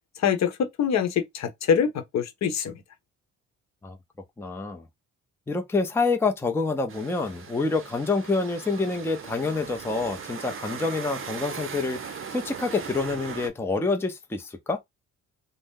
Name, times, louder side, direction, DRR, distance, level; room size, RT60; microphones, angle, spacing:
voice 1, 0.2-2.8, left 7 dB, 60° left, 0.9 m, -25 dB
voice 2, 4.4-4.8 5.5-12.0 12.3-14.8, left 3 dB, 10° left, 0.5 m, -27 dB
sound 1, 6.9-13.5, right 6 dB, 45° right, 0.7 m, -38 dB
2.7 x 2.1 x 3.6 m
cardioid pair, 90°, 30 cm